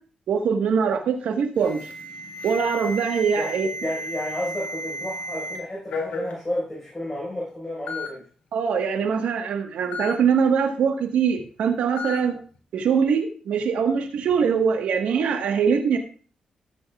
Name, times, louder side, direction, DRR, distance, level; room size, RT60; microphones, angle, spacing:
voice 1, 0.3-1.9 2.4-3.7 8.5-12.4 12.7-16.0, right 6 dB, 80° right, 4 dB, 1.3 m, -22 dB
Alarm, 1.6-5.6 5.9-6.3 7.2-7.3 7.9-8.1 9.9-10.1 12.0-12.2, left 1 dB, 75° left, 3.0 m, -33 dB
voice 2, 3.8-8.2, left 1 dB, 20° left, -5 dB, 4.8 m, -31 dB
14.0 x 8.1 x 2.4 m, 0.41 s
cardioid pair, 70°, 2 cm